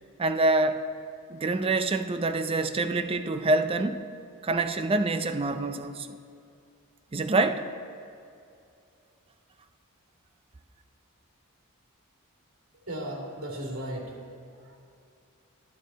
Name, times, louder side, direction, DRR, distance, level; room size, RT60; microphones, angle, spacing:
voice 1, 0.2-0.8 1.3-4.0 4.4-6.2 7.1-7.6, right 2 dB, 25° right, 10 dB, 0.4 m, -26 dB
voice 2, 12.8-14.2 14.4-14.8, right 1 dB, 75° right, -2 dB, 2.5 m, -36 dB
11.5 x 11.0 x 4.2 m, 2.5 s
head